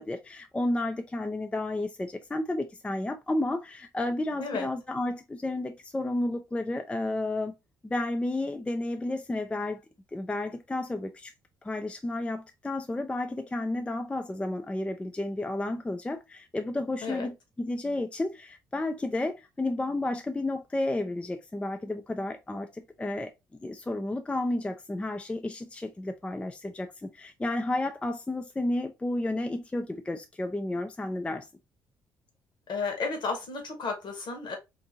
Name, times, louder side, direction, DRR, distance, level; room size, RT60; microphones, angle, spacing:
voice 1, 0.0-7.5 7.8-9.8 10.1-11.3 11.6-23.3 23.6-31.5, left 2 dB, 10° left, 0.3 m, -32 dB
voice 2, 32.7-34.5, left 4 dB, 50° left, 1.0 m, -32 dB
2.6 x 2.5 x 2.6 m
figure-of-eight pair, 45°, 10 cm